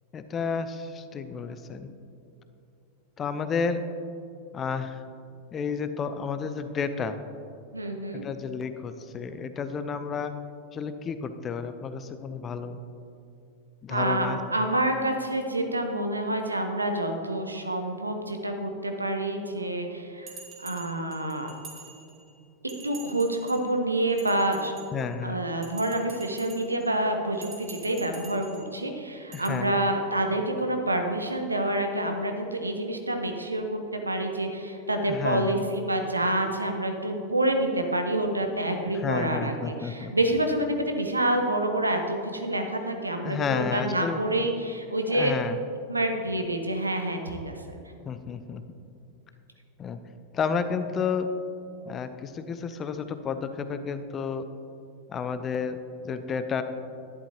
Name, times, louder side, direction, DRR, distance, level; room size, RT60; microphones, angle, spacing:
voice 1, 0.1-1.9 3.2-3.9 4.5-5.0 5.5-7.2 8.1-10.4 10.7-12.8 13.8-14.4 24.9-25.4 29.3-29.9 35.1-35.6 39.0-40.1 43.2-44.2 45.1-45.6 48.1-48.6 49.8-50.0 50.3-51.3 51.9-54.5 55.1-55.8 56.0-56.6, left 6 dB, 25° left, 10 dB, 0.5 m, -31 dB
voice 2, 7.7-8.2 13.9-20.3 20.6-21.5 22.8-24.7 25.2-45.3 45.9-47.8, right 1 dB, 80° right, 5 dB, 0.9 m, -28 dB
Bell, 20.3-22.3 22.7-23.7 24.1-25.1 25.6-26.9 27.3-28.7 29.3-29.5, right 4 dB, 30° right, 2.4 m, -47 dB
11.0 x 11.0 x 2.9 m, 2.6 s
figure-of-eight pair, 90°, 0 cm